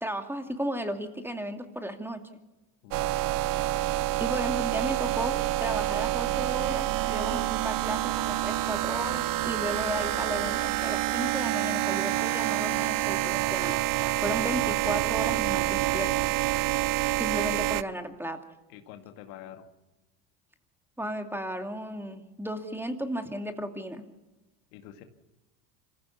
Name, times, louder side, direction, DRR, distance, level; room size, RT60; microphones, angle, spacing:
voice 1, 0.0-2.4 4.2-13.8 14.2-16.1 17.2-18.4 21.0-24.0, equal, 5° right, 5 dB, 2.5 m, -34 dB
sound 1, 2.9-17.8, right 15 dB, 55° right, 0.7 m, -27 dB
voice 2, 18.7-19.7 24.7-25.0, left 11 dB, 80° left, 6 dB, 2.2 m, -46 dB
25.5 x 15.5 x 7.1 m, 1.1 s
supercardioid pair, 90°, 42 cm